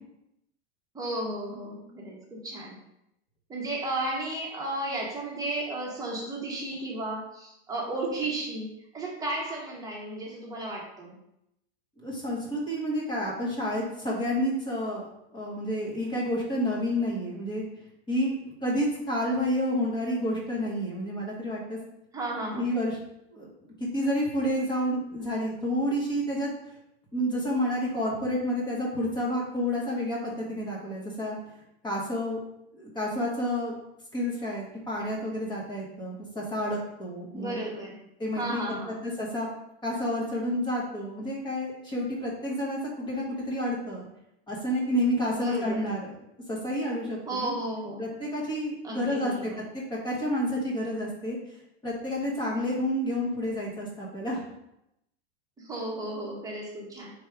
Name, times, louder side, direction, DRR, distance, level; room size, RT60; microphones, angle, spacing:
voice 1, 0.9-2.8 3.5-11.2 22.1-22.7 37.3-38.0 38.3-39.0 45.3-45.8 47.3-48.1 48.8-49.6 55.6-57.1, right 1 dB, 10° right, -3 dB, 1.2 m, -34 dB
voice 2, 12.0-15.1 15.3-17.6 18.1-21.8 22.5-23.0 23.3-23.5 23.9-26.5 27.1-31.4 31.8-32.4 32.7-33.7 34.1-37.5 38.2-38.8 39.0-39.5 39.8-44.1 44.5-46.1 46.5-47.5 48.0-49.5 49.9-51.4 51.8-54.4, equal, 15° left, -3 dB, 1.2 m, -29 dB
3.4 x 3.3 x 4.8 m, 0.83 s
supercardioid pair, 135°, 32 cm